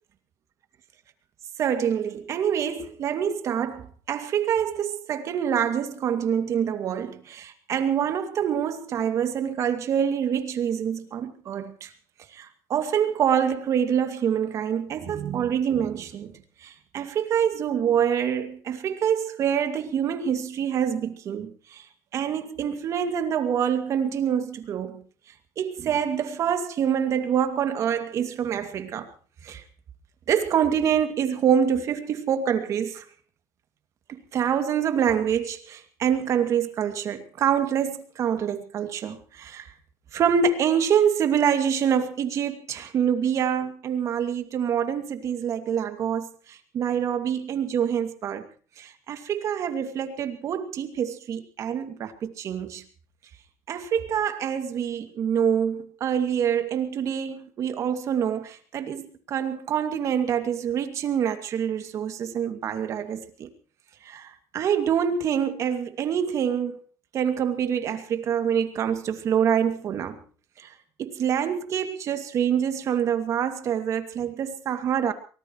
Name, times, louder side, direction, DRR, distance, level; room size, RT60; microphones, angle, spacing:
voice 1, 1.6-11.9 12.3-16.3 16.6-21.8 22.1-25.0 25.6-29.1 29.4-29.6 30.3-33.0 34.1-39.7 40.1-48.4 48.8-52.8 53.7-63.5 64.0-66.8 67.1-70.2 71.0-75.1, right 8 dB, 55° right, 2.4 m, -26 dB
23.5 x 19.0 x 3.2 m
supercardioid pair, 95°, 6 cm